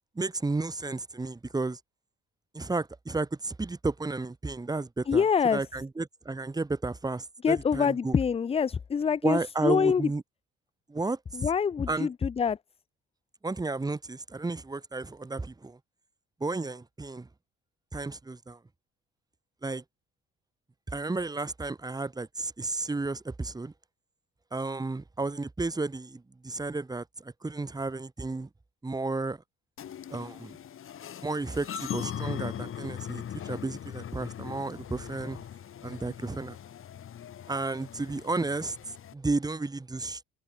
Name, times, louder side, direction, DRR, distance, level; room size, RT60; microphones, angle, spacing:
voice 1, 0.2-1.8 2.5-5.2 5.5-8.1 9.2-10.2 10.9-11.2 11.9-12.1 13.4-15.8 16.4-17.3 17.9-18.6 19.6-19.8 20.9-23.7 24.5-28.5 28.8-29.4 30.1-30.6 31.2-35.4 35.8-36.6 37.5-40.2, right 3 dB, 15° right, 0.8 m, -32 dB
voice 2, 5.1-5.6 7.4-10.1 11.3-12.6, left 6 dB, 20° left, 0.3 m, -25 dB
sound 1, 29.8-39.1, left 9 dB, 45° left, 0.8 m, -40 dB
cardioid pair, 90°, 30 cm